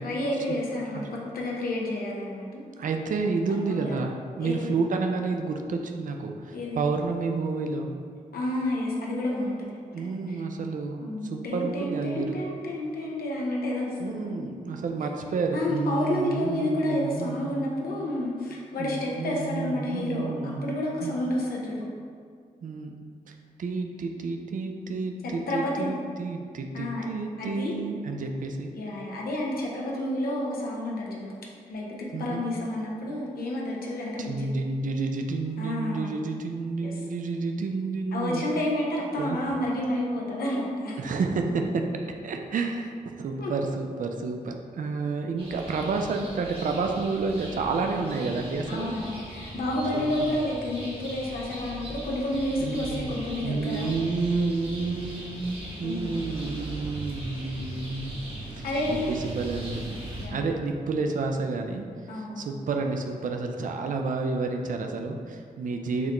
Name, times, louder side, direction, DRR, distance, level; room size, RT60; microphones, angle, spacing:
voice 1, 0.0-2.6 3.7-4.0 4.4-4.7 6.5-6.8 8.3-9.6 10.0-10.1 11.0-14.4 14.7-14.8 15.5-21.8 25.2-25.9 26.7-27.1 27.4-27.8 28.7-31.3 31.7-34.5 35.6-36.1 36.8-36.9 38.1-41.0 43.4-43.5 48.7-53.9 55.8-56.1 58.6-59.1 60.2-60.4 62.1-62.5, left 1 dB, 85° left, -3 dB, 0.6 m, -30 dB
voice 2, 2.8-7.9 9.9-12.4 14.0-17.7 18.8-21.1 22.6-22.9 23.3-28.7 32.1-32.4 34.2-38.4 39.2-39.4 41.0-41.9 42.2-49.0 49.9-50.0 52.6-53.1 53.4-58.2 58.5-60.0 60.3-66.1, right 4 dB, 60° right, 4 dB, 0.4 m, -30 dB
sound 1, 45.4-60.3, right 1 dB, 35° right, 1.1 m, -39 dB
6.0 x 2.1 x 3.0 m, 2.1 s
cardioid pair, 55°, 15 cm